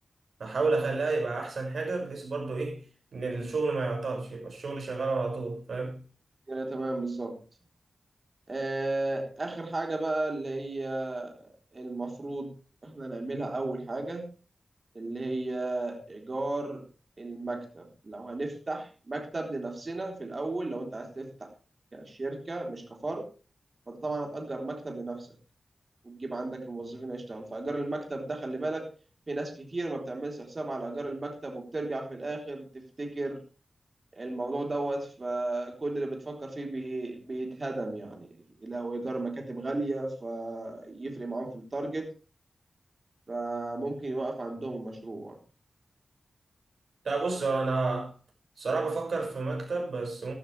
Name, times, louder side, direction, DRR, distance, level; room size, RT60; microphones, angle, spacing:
voice 1, 0.4-2.8 3.1-6.0 15.0-15.1 47.0-48.1 48.6-50.3, right 3 dB, 80° right, 6.1 m, -30 dB
voice 2, 6.5-7.4 8.5-12.5 12.8-14.3 14.9-16.8 17.2-21.5 21.9-23.3 23.9-25.3 26.0-28.9 29.3-33.4 34.1-38.3 38.6-42.1 43.3-45.4, right 2 dB, 40° right, 3.8 m, -34 dB
14.5 x 13.0 x 3.4 m
wide cardioid pair, 85°, 0 cm